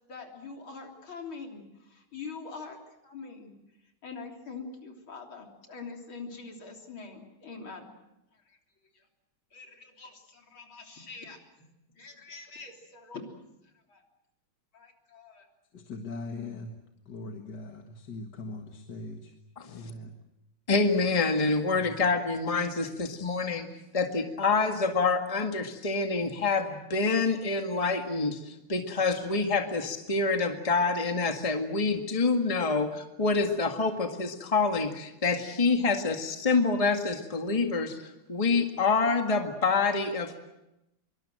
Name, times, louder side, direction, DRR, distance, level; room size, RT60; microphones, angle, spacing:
voice 1, 0.1-2.8 3.0-3.5 4.0-7.9 8.3-8.6 8.9-9.0 9.5-11.4 12.0-13.3 13.9-14.0 14.7-15.5, left 4 dB, 70° left, 2 dB, 4.2 m, -44 dB
voice 2, 15.7-16.8 17.1-19.3 19.7-20.2 21.8-21.9, left 3 dB, 55° left, 4 dB, 2.2 m, -40 dB
voice 3, 20.7-23.7 23.9-38.0 38.3-40.4, left 4 dB, 15° left, 5 dB, 1.8 m, -27 dB
25.0 x 23.5 x 7.7 m, 0.91 s
omnidirectional pair, 2.3 m